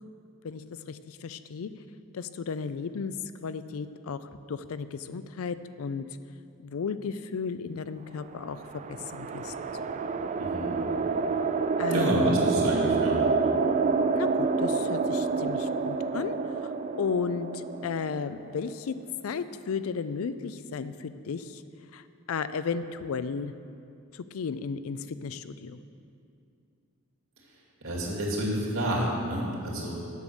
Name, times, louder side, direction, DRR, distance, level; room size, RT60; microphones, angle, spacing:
voice 1, 0.4-1.7 2.1-3.1 3.4-6.1 6.6-9.5 11.8-12.7 14.1-19.0 19.2-21.6 21.9-23.5 24.1-25.8, left 5 dB, 75° left, 13 dB, 0.4 m, -34 dB
sound 1, 8.3-18.7, right 4 dB, 35° right, 0.3 m, -28 dB
voice 2, 10.4-10.8 11.9-13.2 27.8-30.0, equal, 70° right, -4 dB, 2.5 m, -29 dB
8.2 x 6.4 x 7.1 m, 2.5 s
head